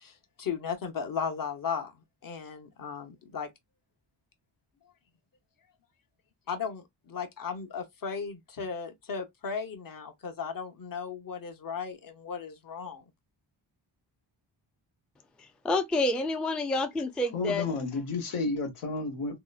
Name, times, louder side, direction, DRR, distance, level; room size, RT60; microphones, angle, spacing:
voice 1, 0.0-1.9 2.2-3.5 6.5-13.0, left 6 dB, 45° left, 0.8 m, -36 dB
voice 2, 15.4-17.6, left 2 dB, ahead, 0.3 m, -28 dB
voice 3, 17.3-19.4, left 3 dB, 85° left, 0.9 m, -31 dB
2.8 x 2.1 x 2.3 m
cardioid pair, 65°, 49 cm